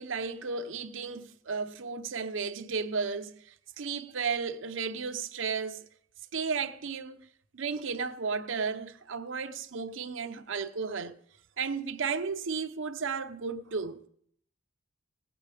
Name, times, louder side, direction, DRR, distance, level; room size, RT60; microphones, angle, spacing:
voice 1, 0.0-5.9 6.3-7.3 7.5-11.2 11.6-14.1, right 5 dB, 70° right, 0.7 m, -34 dB
18.0 x 7.9 x 4.9 m
head